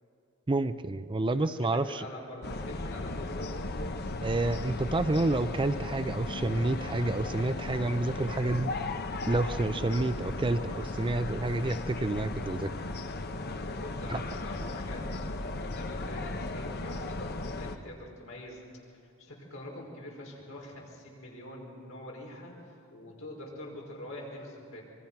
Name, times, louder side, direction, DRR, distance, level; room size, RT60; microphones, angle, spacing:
voice 1, 0.5-2.1 4.2-8.7 9.3-12.7 14.1-14.2, right 2 dB, 25° right, 12 dB, 0.5 m, -29 dB
voice 2, 1.3-3.7 4.2-4.3 13.6-24.8, left 1 dB, 70° left, -2 dB, 5.4 m, -45 dB
sound 1, 2.4-17.8, left 2 dB, 50° left, 1.0 m, -36 dB
25.5 x 23.0 x 5.9 m, 2.4 s
head